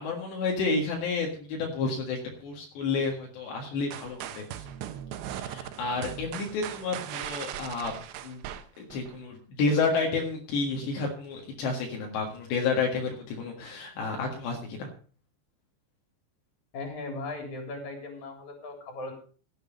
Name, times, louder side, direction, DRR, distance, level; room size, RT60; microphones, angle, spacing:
voice 1, 0.0-4.6 5.3-7.9 8.2-8.4 8.8-14.9, left 4 dB, 75° left, 0 dB, 3.9 m, -30 dB
sound 1, 3.9-9.2, right 11 dB, 75° right, 2.9 m, -39 dB
voice 2, 16.7-19.1, left 2 dB, 45° left, 3 dB, 4.6 m, -38 dB
16.0 x 8.2 x 5.3 m, 0.41 s
omnidirectional pair, 5.2 m